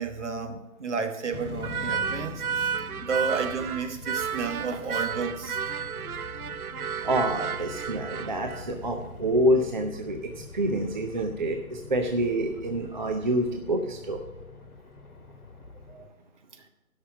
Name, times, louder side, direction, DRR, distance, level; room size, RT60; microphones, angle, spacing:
voice 1, 0.0-2.7 3.0-5.7 11.2-11.3 15.9-16.1, right 5 dB, 55° right, 6 dB, 1.3 m, -32 dB
sound 1, 1.3-16.1, left 5 dB, 85° left, 1.2 m, -44 dB
sound 2, 1.6-8.7, right 7 dB, 85° right, 0.6 m, -32 dB
voice 2, 7.0-10.2 10.5-14.2, right 1 dB, 35° right, 3 dB, 0.6 m, -27 dB
11.0 x 6.1 x 6.2 m, 1.0 s
figure-of-eight pair, 145°, 43 cm